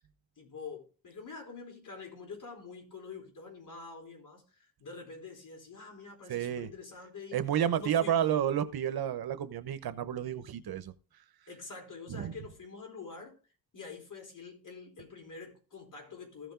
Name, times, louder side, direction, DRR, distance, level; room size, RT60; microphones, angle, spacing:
voice 1, 0.4-7.4 7.8-8.4 11.5-13.3 13.7-16.5, left 4 dB, 55° left, 4.2 m, -46 dB
voice 2, 6.3-6.7 7.3-10.9 12.1-12.3, right 10 dB, 80° right, 1.0 m, -30 dB
15.0 x 5.2 x 3.8 m
cardioid pair, 85°, 36 cm